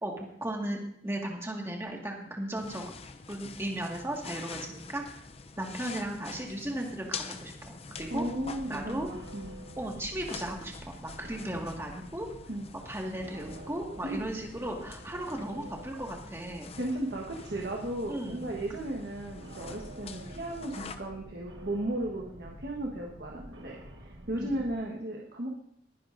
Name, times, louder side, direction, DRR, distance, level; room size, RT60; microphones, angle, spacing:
voice 1, 0.0-2.8 3.3-5.0 5.6-8.3 8.7-9.1 9.8-12.3 12.9-16.7 18.1-18.6 24.4-24.5, right 1 dB, 15° right, 0 dB, 1.9 m, -36 dB
sound 1, 2.5-20.9, left 4 dB, 35° left, 0.6 m, -46 dB
sound 2, 8.0-24.8, right 1 dB, 85° right, 1.3 m, -49 dB
voice 2, 8.1-9.6 12.5-12.7 14.0-14.2 16.8-25.5, right 1 dB, 60° right, -1 dB, 1.5 m, -35 dB
20.5 x 10.5 x 2.7 m, 0.68 s
head